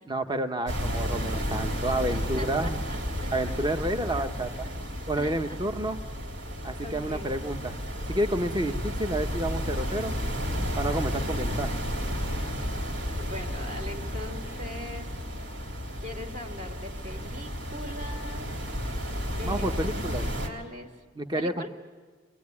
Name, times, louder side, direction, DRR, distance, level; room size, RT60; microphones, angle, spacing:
voice 1, 0.1-2.8 3.3-4.5 5.1-6.0 6.6-7.7 8.1-10.1 10.8-11.8 19.4-20.2 21.2-21.7, right 1 dB, 25° right, 8 dB, 1.0 m, -30 dB
sound 1, 0.7-20.5, equal, 70° right, 3.2 m, -32 dB
voice 2, 2.0-3.9 4.2-4.3 4.6-4.7 5.2-5.6 6.8-7.4 13.2-15.2 16.0-18.6 19.4-20.9 21.3-21.7, equal, 40° right, 3 dB, 2.4 m, -41 dB
26.0 x 19.5 x 9.7 m, 1.5 s
head